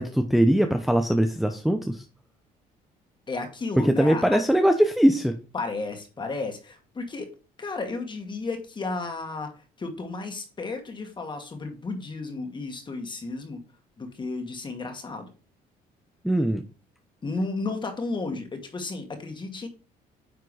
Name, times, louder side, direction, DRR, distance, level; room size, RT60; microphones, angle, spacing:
voice 1, 0.0-2.0 3.8-5.3 16.2-16.6, right 1 dB, ahead, 5 dB, 0.8 m, -21 dB
voice 2, 3.3-4.4 5.5-7.3 7.6-13.6 14.0-15.3 17.2-19.7, left 3 dB, 30° left, 4 dB, 2.2 m, -33 dB
9.4 x 3.7 x 4.9 m, 0.34 s
cardioid pair, 110°, 17 cm